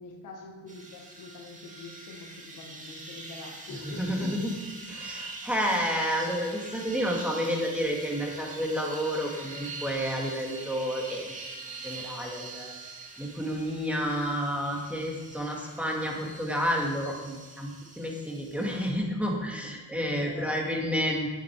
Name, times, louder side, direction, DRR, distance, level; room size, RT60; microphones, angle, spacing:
voice 1, 0.0-4.5 5.2-5.4 20.1-20.5, left 3 dB, 85° left, 2 dB, 1.6 m, -45 dB
sound 1, 0.7-18.9, right 3 dB, 25° right, 2.1 m, -44 dB
voice 2, 3.7-4.6 4.9-11.3 11.7-12.7 13.2-21.3, equal, 5° right, -1 dB, 2.1 m, -30 dB
8.3 x 8.2 x 4.7 m, 1.2 s
cardioid pair, 90°, 30 cm